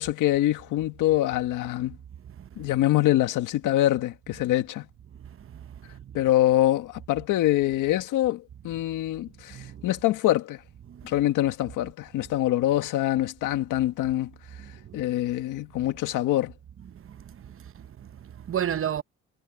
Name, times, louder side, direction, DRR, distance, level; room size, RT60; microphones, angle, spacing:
voice 1, 0.0-2.0 2.6-4.9 6.1-10.6 11.0-14.3 14.9-16.5, left 14 dB, 90° left, 1.8 m, -24 dB
voice 2, 9.5-9.8 10.9-11.1 14.9-15.0 16.9-19.0, right 9 dB, 45° right, 0.9 m, -33 dB
cardioid pair, 90°, 30 cm